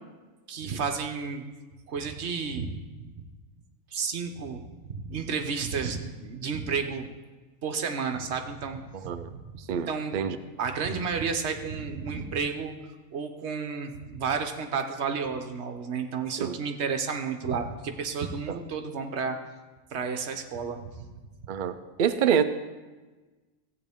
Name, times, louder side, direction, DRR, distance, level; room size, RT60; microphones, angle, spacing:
voice 1, 0.5-1.4 1.9-2.7 3.0-3.1 3.9-7.1 7.6-9.4 9.7-10.2 10.6-12.7 13.1-19.4 19.9-20.9, right 5 dB, 55° right, 5 dB, 1.1 m, -31 dB
voice 2, 8.9-9.3 9.7-10.4 16.4-16.6 18.5-18.6 21.5-22.4, right 8 dB, 85° right, 9 dB, 0.4 m, -27 dB
14.5 x 8.9 x 3.6 m, 1.3 s
omnidirectional pair, 1.5 m